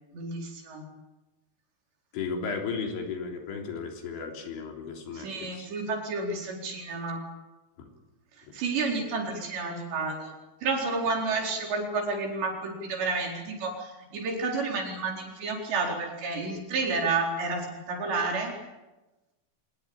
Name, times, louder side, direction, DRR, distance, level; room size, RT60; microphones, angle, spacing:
voice 1, 0.1-0.8 5.1-7.3 8.5-10.3 10.6-18.5, right 3 dB, 70° right, 1 dB, 6.5 m, -30 dB
voice 2, 2.1-5.7 7.8-7.9, left 5 dB, 80° left, 2 dB, 5.8 m, -35 dB
25.0 x 20.5 x 8.9 m, 1.1 s
omnidirectional pair, 5.3 m